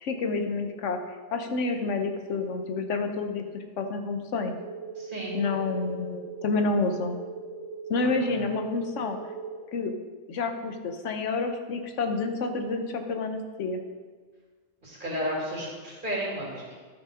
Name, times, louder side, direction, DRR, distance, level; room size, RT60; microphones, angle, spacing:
voice 1, 0.0-4.5 5.3-7.2 7.9-9.2 9.7-9.9 10.3-13.8, left 3 dB, 90° left, 6 dB, 1.2 m, -29 dB
sound 1, 4.5-9.5, right 5 dB, 70° right, 1.4 m, -39 dB
voice 2, 5.0-5.4 8.3-8.4 14.8-16.7, equal, 45° right, -5 dB, 3.0 m, -33 dB
12.5 x 5.2 x 5.0 m, 1.5 s
omnidirectional pair, 1.2 m